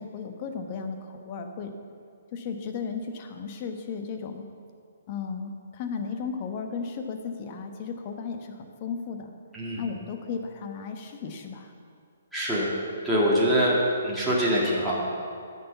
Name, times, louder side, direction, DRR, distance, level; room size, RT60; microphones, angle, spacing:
voice 1, 0.0-1.7 2.3-4.5 5.1-9.3 9.8-11.7, left 5 dB, 35° left, 5 dB, 1.1 m, -35 dB
voice 2, 12.3-12.7 13.0-13.8 14.0-15.0, equal, ahead, -9 dB, 2.0 m, -24 dB
10.5 x 6.6 x 6.9 m, 2.3 s
figure-of-eight pair, 130°, 0 cm